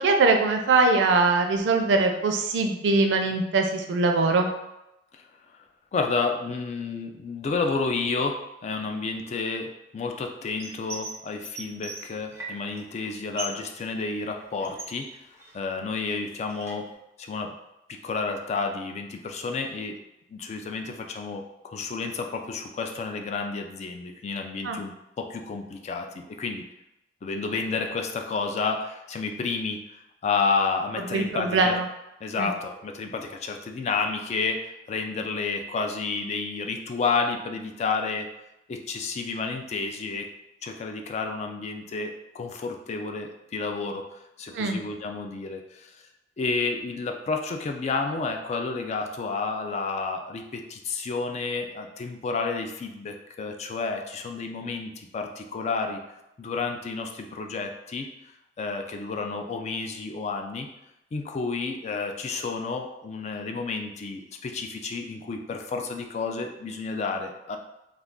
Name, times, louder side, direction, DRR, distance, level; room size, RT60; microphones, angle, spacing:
voice 1, 0.0-4.5 24.6-24.8 31.0-31.9 32.4-32.5 44.5-44.8, right 3 dB, 80° right, 4 dB, 0.4 m, -22 dB
voice 2, 5.9-15.1 15.5-16.9 17.2-17.6 17.9-20.0 20.3-26.6 27.2-29.8 30.2-31.7 32.2-38.3 38.7-40.3 40.6-45.9 46.4-56.0 56.4-58.1 58.6-60.7 61.1-67.6, left 4 dB, 40° left, 4 dB, 0.3 m, -30 dB
sound 1, 10.6-11.2 11.4-12.8 13.1-13.7 13.9-15.7 16.1-16.9, right 2 dB, 15° right, 0.5 m, -39 dB
2.4 x 2.3 x 3.5 m, 0.89 s
head